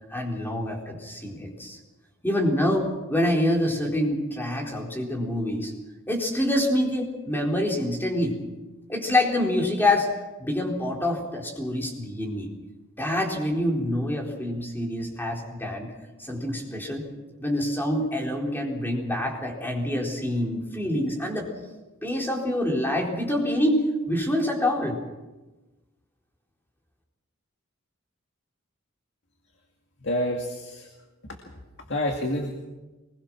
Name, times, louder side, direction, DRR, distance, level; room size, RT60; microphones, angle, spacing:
voice 1, 0.1-1.8 2.2-5.7 6.1-8.4 8.9-10.1 10.4-12.5 13.0-15.9 16.2-17.1 17.4-21.5 22.0-25.0, left 1 dB, 10° left, 0 dB, 4.2 m, -26 dB
voice 2, 30.0-30.9 31.3-31.4 31.9-32.5, left 1 dB, 55° left, 2 dB, 2.3 m, -28 dB
24.0 x 21.5 x 6.3 m, 1.1 s
head